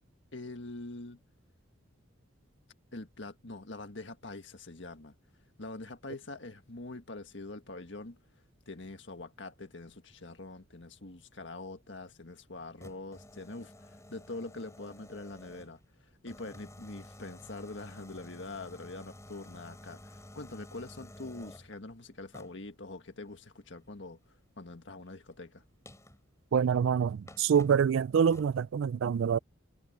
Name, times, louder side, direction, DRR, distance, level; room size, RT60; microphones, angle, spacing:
voice 1, 0.3-1.2 2.9-5.1 5.6-8.2 8.7-25.6, left 2 dB, 60° left, 1.8 m, -44 dB
sound 1, 12.6-15.8 16.3-21.8 22.3-22.7 25.1-25.2 25.9-26.2 26.9-27.0 27.3-27.9 28.3-28.6, left 1 dB, 15° left, 5.4 m, -52 dB
voice 2, 26.5-29.4, right 7 dB, 70° right, 0.3 m, -26 dB
head